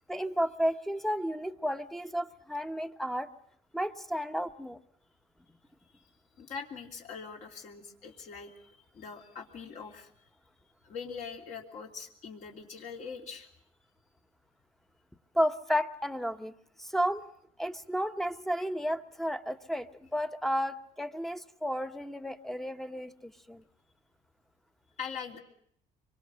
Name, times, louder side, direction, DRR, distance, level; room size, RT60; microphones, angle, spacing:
voice 1, 0.1-3.3 3.7-4.8 15.3-16.5 16.8-17.2 17.6-23.6, equal, ahead, 10 dB, 1.1 m, -32 dB
voice 2, 6.4-10.3 10.8-13.5 25.0-25.4, left 6 dB, 55° left, 1 dB, 3.2 m, -43 dB
25.0 x 23.0 x 6.3 m, 0.69 s
cardioid pair, 125°, 15 cm